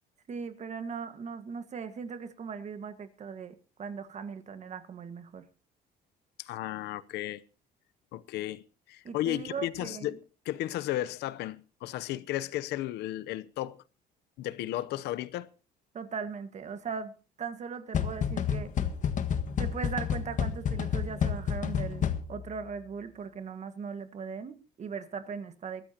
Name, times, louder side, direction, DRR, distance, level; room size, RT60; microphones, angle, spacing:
voice 1, 0.3-5.5 9.0-10.2 15.9-18.7 19.6-25.9, right 6 dB, 45° right, 1.6 m, -39 dB
voice 2, 6.4-7.4 8.1-8.6 8.9-10.2 10.4-13.8 14.4-15.5, left 14 dB, 80° left, 0.8 m, -34 dB
sound 1, 17.9-22.5, left 7 dB, 50° left, 1.5 m, -30 dB
22.5 x 13.5 x 2.9 m
cardioid pair, 110°, 17 cm